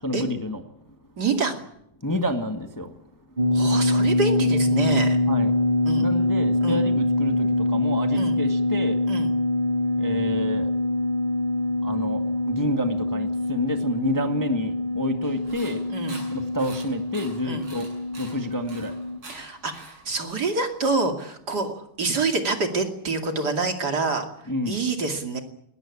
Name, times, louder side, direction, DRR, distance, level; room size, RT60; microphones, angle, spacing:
voice 1, 0.0-0.6 0.9-1.0 2.0-3.0 3.3-3.4 5.3-5.6 6.0-9.0 10.0-10.7 11.8-15.8 16.3-17.9 18.1-19.0 24.5-24.8, equal, 10° left, 6 dB, 1.5 m, -29 dB
voice 2, 1.2-1.6 3.5-5.2 5.9-6.1 6.6-6.8 8.1-8.4 9.1-9.3 15.9-16.2 17.4-17.7 19.3-24.3 24.7-25.4, right 3 dB, 50° right, 5 dB, 3.0 m, -27 dB
sound 1, 3.4-19.2, left 1 dB, 30° right, 0.9 m, -24 dB
sound 2, 15.2-21.0, right 2 dB, 70° right, 9.1 m, -46 dB
21.0 x 20.0 x 8.5 m, 0.76 s
omnidirectional pair, 2.4 m